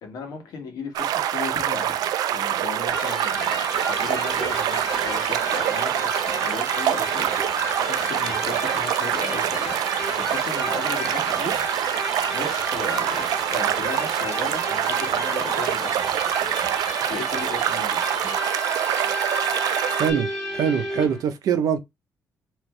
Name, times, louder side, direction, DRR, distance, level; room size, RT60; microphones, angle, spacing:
voice 1, 0.0-7.3 7.8-9.8 10.1-15.9 17.0-18.1, left 4 dB, 90° left, 1.5 m, -36 dB
sound 1, 1.0-20.1, right 11 dB, 85° right, 0.3 m, -25 dB
Electric guitar, 2.9-21.2, left 1 dB, ahead, 1.8 m, -33 dB
sound 2, 3.6-16.4, left 5 dB, 65° left, 1.0 m, -42 dB
voice 2, 20.5-21.8, right 8 dB, 70° right, 0.8 m, -23 dB
3.3 x 3.1 x 3.1 m
cardioid pair, 165°, 6 cm